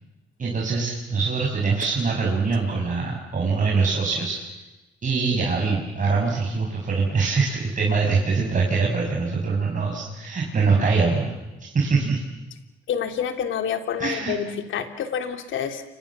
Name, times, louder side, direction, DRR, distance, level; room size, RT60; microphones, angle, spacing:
voice 1, 0.4-4.4 5.0-11.3 11.6-12.2 14.0-14.3, right 4 dB, 40° right, -2 dB, 6.5 m, -23 dB
voice 2, 12.9-15.8, left 8 dB, 75° left, 7 dB, 3.1 m, -28 dB
29.5 x 25.5 x 7.4 m, 1.1 s
cardioid pair, 90°, 20 cm